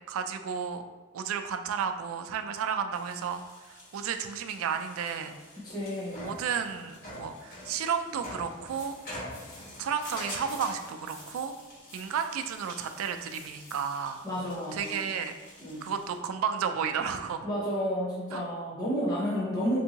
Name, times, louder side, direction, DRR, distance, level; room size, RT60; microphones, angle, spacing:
voice 1, 0.1-0.8 1.1-3.4 3.9-5.3 6.2-9.0 9.8-11.5 11.9-14.2 14.7-15.3 15.8-17.5 18.3-18.4, right 7 dB, 80° right, 7 dB, 0.3 m, -32 dB
sound 1, 2.9-16.2, left 1 dB, 45° left, 1.0 m, -46 dB
voice 2, 5.6-6.3 14.2-15.1 15.6-15.9 17.4-19.8, equal, 20° left, -8 dB, 0.8 m, -31 dB
sound 2, 8.7-14.2, left 1 dB, 70° left, 1.3 m, -52 dB
3.5 x 2.6 x 2.8 m, 1.4 s
head